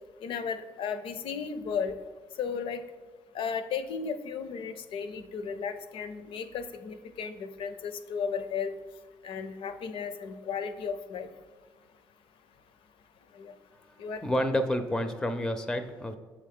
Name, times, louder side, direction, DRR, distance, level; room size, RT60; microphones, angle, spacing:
voice 1, 0.2-1.9 2.4-2.8 3.3-8.7 9.2-11.3 13.4-13.5 14.0-14.2, left 6 dB, 70° left, 11 dB, 0.5 m, -34 dB
voice 2, 14.0-16.2, equal, 5° left, 8 dB, 0.4 m, -29 dB
7.1 x 3.8 x 3.5 m, 1.5 s
cardioid pair, 90°, 9 cm